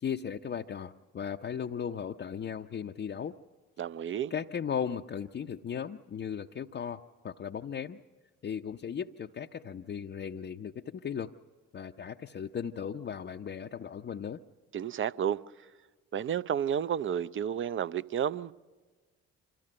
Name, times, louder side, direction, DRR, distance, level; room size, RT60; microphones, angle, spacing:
voice 1, 0.0-3.4 4.3-8.0 8.4-11.3 11.7-14.4, left 7 dB, 30° left, 0.6 m, -37 dB
voice 2, 3.8-4.3 14.7-15.4 16.1-18.5, right 9 dB, 35° right, 0.5 m, -31 dB
25.5 x 14.0 x 7.6 m
hypercardioid pair, 45°, 35 cm